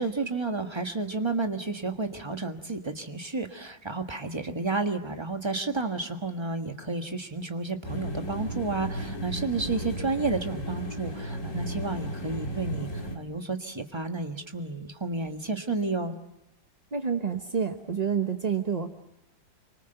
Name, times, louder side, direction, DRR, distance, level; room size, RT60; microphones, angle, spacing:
voice 1, 0.0-16.1, right 3 dB, 15° right, 5 dB, 1.4 m, -31 dB
sound 1, 7.8-13.2, equal, 40° left, 2.8 m, -34 dB
voice 2, 16.9-18.9, right 6 dB, 30° right, 5 dB, 0.7 m, -28 dB
27.0 x 25.0 x 7.9 m, 0.91 s
omnidirectional pair, 2.1 m